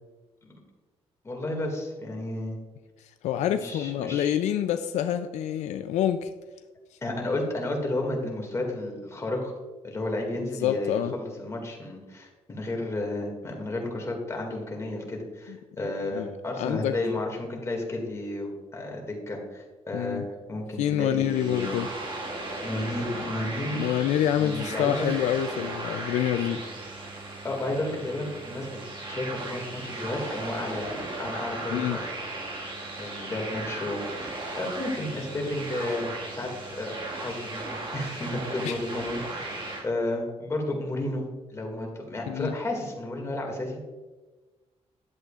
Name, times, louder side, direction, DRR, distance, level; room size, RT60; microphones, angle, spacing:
voice 1, 1.2-2.6 3.5-4.4 7.0-9.5 9.8-21.8 22.6-23.9 24.4-25.1 27.4-28.7 29.1-32.0 33.0-36.5 36.8-41.2 41.5-43.8, left 1 dB, 25° left, 0 dB, 2.2 m, -32 dB
voice 2, 3.2-6.3 10.4-11.1 16.1-16.3 16.6-17.0 19.9-20.3 20.8-21.9 23.7-26.6 31.7-32.0 38.6-38.8 42.3-42.5, left 10 dB, 85° left, 8 dB, 0.4 m, -27 dB
sound 1, 21.2-39.8, right 2 dB, 45° right, 1.8 m, -36 dB
10.5 x 8.0 x 2.4 m, 1.2 s
cardioid pair, 105°, 12 cm